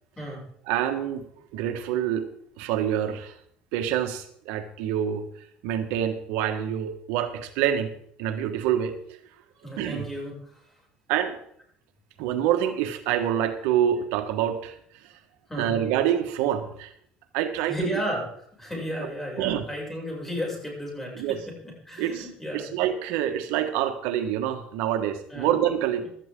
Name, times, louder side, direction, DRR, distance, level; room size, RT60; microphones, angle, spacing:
voice 1, 0.2-0.5 9.6-10.6 15.5-15.8 17.7-18.3 18.5-22.8 25.3-25.5 26.0-26.1, equal, 10° left, -2 dB, 6.8 m, -33 dB
voice 2, 0.7-1.3 1.5-2.3 2.6-3.4 3.7-7.9 8.2-9.2 9.8-10.0 11.1-11.4 12.2-15.1 15.6-16.9 17.3-17.9 19.0-19.1 19.4-19.6 21.2-21.4 22.0-22.3 22.5-26.1, right 10 dB, 85° right, 7 dB, 1.4 m, -26 dB
16.5 x 12.5 x 3.8 m, 0.66 s
cardioid pair, 120°, 3 cm